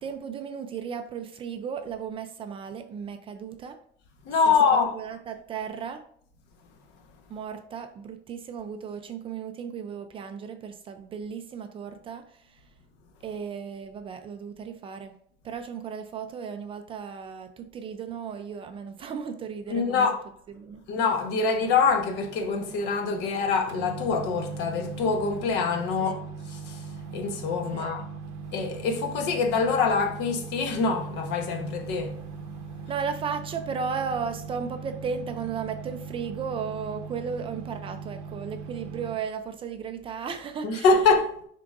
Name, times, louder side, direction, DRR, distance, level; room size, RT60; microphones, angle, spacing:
voice 1, 0.0-3.8 4.5-6.0 7.3-12.7 13.2-15.1 15.4-20.1 20.5-20.8 26.0-26.2 27.7-27.9 32.9-40.9, right 6 dB, 25° right, 0.4 m, -35 dB
voice 2, 4.3-4.9 19.7-20.2 20.9-26.9 27.1-28.0 28.5-32.2 40.6-41.3, left 4 dB, 55° left, 1.1 m, -25 dB
sound 1, 21.6-39.2, right 5 dB, 75° right, 0.8 m, -40 dB
10.5 x 3.7 x 2.5 m
cardioid pair, 170°, 21 cm